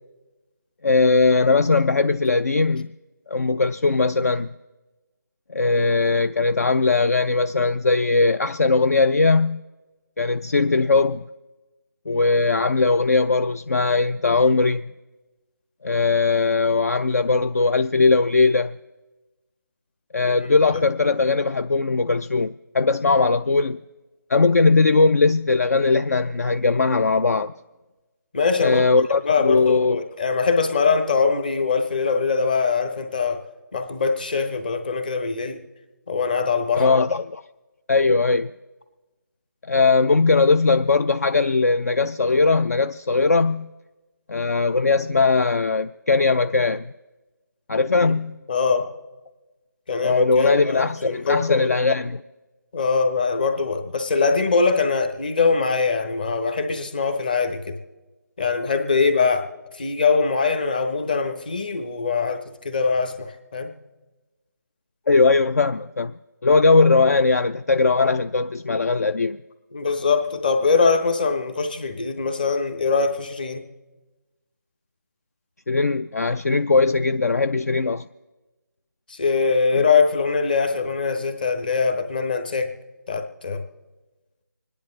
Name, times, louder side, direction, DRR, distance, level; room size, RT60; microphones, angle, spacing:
voice 1, 0.8-2.9 3.3-4.5 5.5-9.6 10.2-11.3 12.1-14.9 15.8-18.8 20.1-23.8 24.3-27.5 28.6-30.0 36.7-37.4 37.9-38.5 39.7-43.7 44.3-46.9 47.7-48.4 50.0-52.2 65.1-66.1 66.4-69.4 75.7-78.0 79.7-79.9, left 3 dB, 50° left, 0.4 m, -19 dB
voice 2, 28.3-28.8 29.2-33.4 33.7-35.6 36.1-36.9 48.0-48.2 48.5-48.9 49.9-51.7 52.7-57.8 58.4-59.5 59.8-63.7 69.7-73.6 79.1-82.7 83.1-83.6, left 4 dB, 25° left, 1.0 m, -22 dB
26.0 x 10.5 x 3.2 m
figure-of-eight pair, 170°, 11 cm